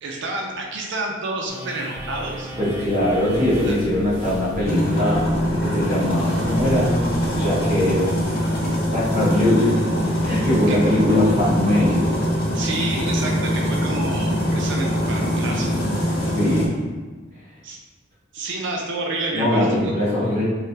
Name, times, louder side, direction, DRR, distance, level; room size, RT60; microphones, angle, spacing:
voice 1, 0.0-2.5 3.7-3.8 10.7-10.8 12.5-15.9 17.6-17.8 18.3-19.9, right 2 dB, 60° right, 0 dB, 0.5 m, -29 dB
sound 1, 1.5-8.3, equal, 15° right, 0.5 m, -36 dB
sound 2, 2.6-12.9, equal, 10° left, 1.0 m, -41 dB
voice 2, 2.6-7.0 7.3-8.2 8.9-12.1 16.2-16.8 19.3-20.4, left 1 dB, 35° right, -9 dB, 1.1 m, -21 dB
sound 3, 4.6-16.7, equal, 50° left, 0.7 m, -23 dB
3.3 x 2.2 x 2.7 m, 1.3 s
head